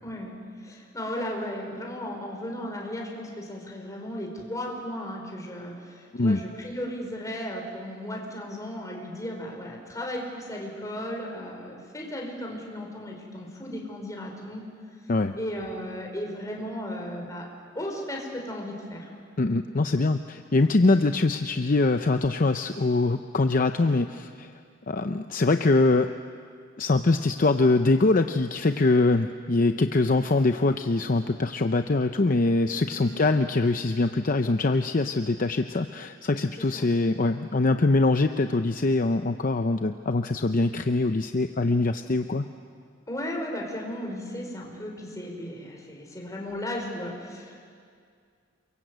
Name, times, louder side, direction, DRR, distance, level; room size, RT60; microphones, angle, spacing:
voice 1, 0.0-0.3 0.6-14.6 15.4-17.5 17.8-19.1 32.9-33.2 36.6-36.9 43.1-47.7, equal, 20° left, 0 dB, 5.2 m, -35 dB
voice 2, 19.4-24.5 24.9-26.1 26.8-42.4, left 2 dB, 45° left, 7 dB, 0.7 m, -23 dB
29.0 x 23.0 x 8.1 m, 2.2 s
head